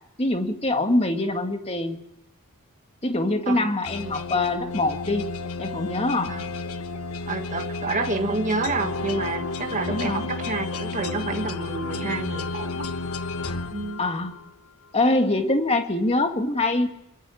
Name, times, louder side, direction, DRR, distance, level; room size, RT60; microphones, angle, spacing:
voice 1, 0.2-2.0 3.0-5.2 5.6-6.4 9.9-10.3 14.0-14.4 14.9-16.9, left 2 dB, 30° left, 5 dB, 2.1 m, -24 dB
sound 1, 3.8-14.5, left 3 dB, 85° left, 1.2 m, -32 dB
voice 2, 4.0-4.4 6.3-6.5 7.3-12.9 13.7-14.0, right 3 dB, 35° right, 4 dB, 1.8 m, -29 dB
24.5 x 21.0 x 8.7 m, 0.89 s
head